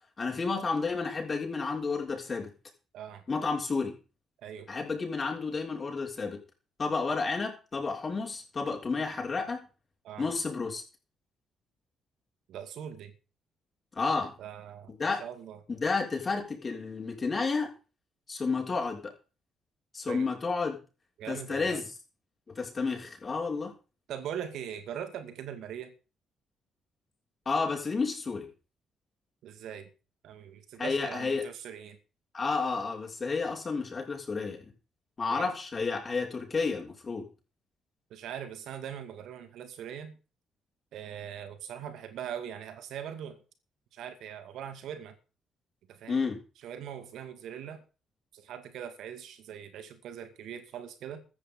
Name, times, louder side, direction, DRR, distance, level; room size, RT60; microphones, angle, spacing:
voice 1, 0.2-2.5 3.3-4.0 4.7-6.4 6.8-9.7 10.2-10.8 13.9-14.4 14.9-15.2 15.7-17.7 18.3-19.1 19.9-20.8 21.3-21.9 22.5-23.7 27.5-28.5 30.8-31.4 32.3-34.7 35.2-37.3 46.1-46.4, left 4 dB, 40° left, 6.0 m, -31 dB
voice 2, 12.5-13.1 14.4-14.9 15.2-15.6 20.1-20.3 21.2-21.8 24.1-25.9 29.4-29.9 30.2-32.0 35.3-35.5 38.1-40.1 40.9-43.4 43.9-45.1 45.9-46.2 46.6-47.8 48.3-51.2, right 9 dB, 65° right, 2.2 m, -41 dB
15.5 x 13.5 x 4.0 m
hypercardioid pair, 40°, 0 cm